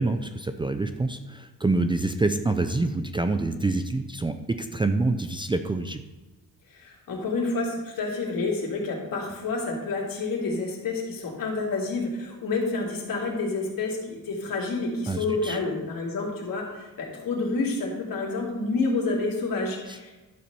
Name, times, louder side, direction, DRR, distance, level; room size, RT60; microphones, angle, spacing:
voice 1, 0.0-6.0 15.1-15.6 19.9-20.1, right 2 dB, 15° right, 8 dB, 0.4 m, -26 dB
voice 2, 6.7-20.1, left 3 dB, 70° left, -1 dB, 2.7 m, -29 dB
11.5 x 4.2 x 6.8 m, 1.1 s
wide cardioid pair, 140°, 35 cm